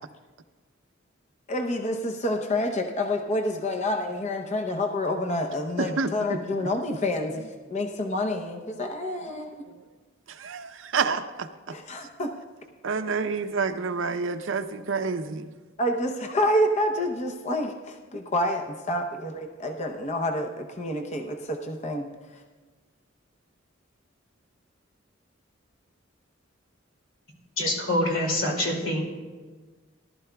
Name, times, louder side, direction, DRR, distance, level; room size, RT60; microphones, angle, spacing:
voice 1, 1.5-9.6 11.7-12.3 15.8-22.1, left 1 dB, 35° left, 0.7 m, -28 dB
voice 2, 10.4-11.5 12.8-15.5, right 5 dB, 70° right, 0.6 m, -28 dB
voice 3, 27.6-29.0, left 1 dB, 80° left, 2.4 m, -25 dB
18.0 x 12.0 x 2.3 m
head